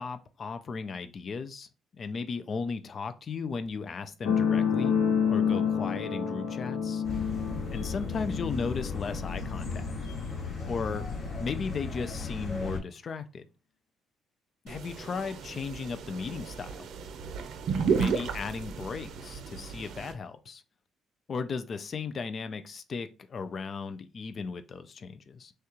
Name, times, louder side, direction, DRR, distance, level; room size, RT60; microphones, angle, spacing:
voice 1, 0.0-1.7 1.9-5.0 5.3-7.0 7.7-9.9 10.6-11.0 11.4-13.4 14.6-16.9 17.9-20.6 21.3-25.5, left 5 dB, 35° left, 0.4 m, -36 dB
sound 1, 4.2-11.3 12.2-12.3, left 7 dB, 70° left, 1.0 m, -29 dB
sound 2, 7.0-12.8, left 3 dB, 55° left, 2.2 m, -36 dB
sound 3, 14.7-20.1, right 5 dB, 60° right, 0.7 m, -33 dB
6.3 x 2.4 x 3.0 m
cardioid pair, 140°, 0 cm